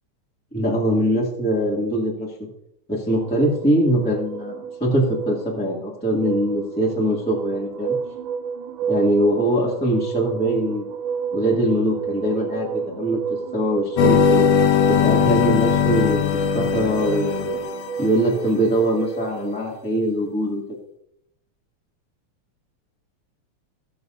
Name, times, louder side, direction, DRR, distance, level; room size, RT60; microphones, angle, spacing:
voice 1, 0.5-2.3 2.9-7.9 8.9-10.8 11.3-13.2 13.5-14.5 14.9-16.2 16.5-17.6 18.0-20.6, right 1 dB, 5° left, -3 dB, 1.8 m, -22 dB
sound 1, 3.1-19.5, right 6 dB, 90° right, 2.1 m, -31 dB
sound 2, 14.0-18.2, left 7 dB, 75° left, 1.5 m, -19 dB
18.0 x 7.0 x 2.7 m, 0.76 s
omnidirectional pair, 3.6 m